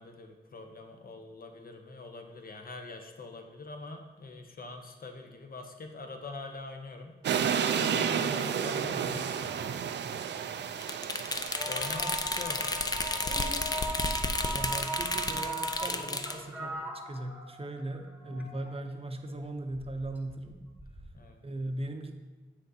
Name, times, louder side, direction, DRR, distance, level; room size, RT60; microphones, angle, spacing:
voice 1, 0.0-7.2 7.6-10.9 11.7-13.9 18.2-18.3 21.1-21.4, left 3 dB, 50° left, 4 dB, 0.8 m, -44 dB
sound 1, 7.2-14.4, right 8 dB, 70° right, 0.4 m, -32 dB
sound 2, 10.8-16.4, left 2 dB, 20° left, 0.5 m, -32 dB
sound 3, 11.5-18.9 19.7-21.2, right 2 dB, 10° right, 1.0 m, -39 dB
voice 2, 14.5-20.6 21.4-22.1, right 1 dB, 30° right, 5 dB, 0.7 m, -38 dB
7.9 x 6.0 x 2.7 m, 1.2 s
cardioid pair, 65°, 19 cm